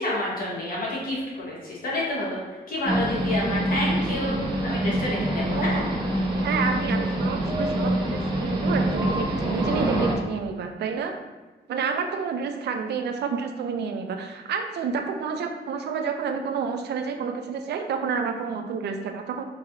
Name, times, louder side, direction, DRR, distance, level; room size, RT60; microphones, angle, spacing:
voice 1, 0.0-2.4 2.7-5.8, left 1 dB, 60° left, -5 dB, 1.1 m, -29 dB
sound 1, 2.8-10.2, right 1 dB, 25° right, 0.6 m, -25 dB
voice 2, 6.4-11.1 11.7-19.4, right 5 dB, 80° right, 5 dB, 0.4 m, -29 dB
3.9 x 2.5 x 2.8 m, 1.2 s
wide cardioid pair, 140°, 17 cm